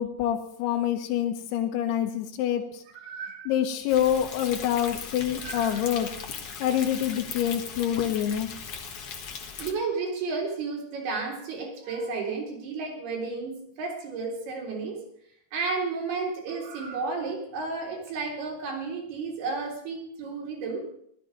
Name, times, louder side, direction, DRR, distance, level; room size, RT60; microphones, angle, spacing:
voice 1, 0.0-2.8 3.5-6.1 6.6-8.5, left 10 dB, 85° left, 3 dB, 3.0 m, -26 dB
voice 2, 3.0-3.5 5.4-5.8 9.6-15.0 15.5-20.9, right 4 dB, 75° right, 0 dB, 5.4 m, -32 dB
Thunder, 3.9-9.7, left 6 dB, 50° left, 1.8 m, -38 dB
16.0 x 13.0 x 5.1 m, 0.70 s
omnidirectional pair, 4.6 m